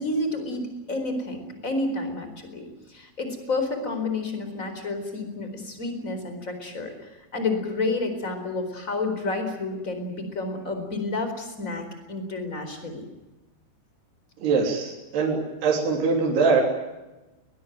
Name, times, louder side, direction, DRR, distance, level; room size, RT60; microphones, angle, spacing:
voice 1, 0.0-13.0, left 2 dB, 15° left, 7 dB, 4.0 m, -30 dB
voice 2, 14.4-16.6, right 4 dB, 60° right, -1 dB, 5.2 m, -23 dB
22.0 x 20.5 x 9.2 m, 1.1 s
omnidirectional pair, 5.5 m